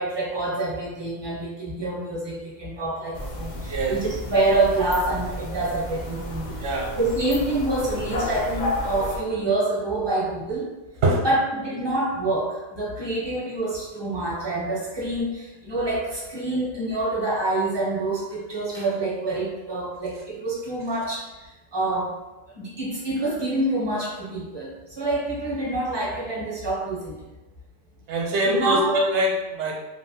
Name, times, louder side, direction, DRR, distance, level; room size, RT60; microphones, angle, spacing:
voice 1, 0.0-6.6 7.0-10.7 11.2-22.1 22.5-27.2 28.4-28.9, right 2 dB, 30° right, -6 dB, 0.5 m, -26 dB
sound 1, 3.1-9.2, left 1 dB, 55° left, 0.5 m, -32 dB
voice 2, 6.6-6.9 11.0-11.2 28.1-29.7, right 1 dB, 65° right, -1 dB, 0.9 m, -23 dB
3.0 x 2.0 x 2.7 m, 1.0 s
omnidirectional pair, 1.3 m